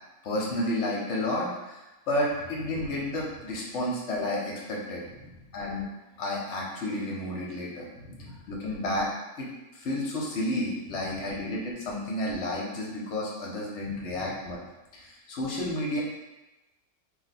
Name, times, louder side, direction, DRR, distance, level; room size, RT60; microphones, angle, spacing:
voice 1, 0.2-5.0 5.5-5.8 6.2-7.9 8.5-9.1 9.4-14.6 14.9-16.0, left 1 dB, 60° left, -3 dB, 0.9 m, -31 dB
voice 2, 2.6-3.0 5.0-5.5 7.9-8.5 10.9-11.3 13.8-14.3, left 1 dB, 85° right, -3 dB, 1.3 m, -48 dB
2.8 x 2.1 x 4.0 m, 1.0 s
omnidirectional pair, 1.6 m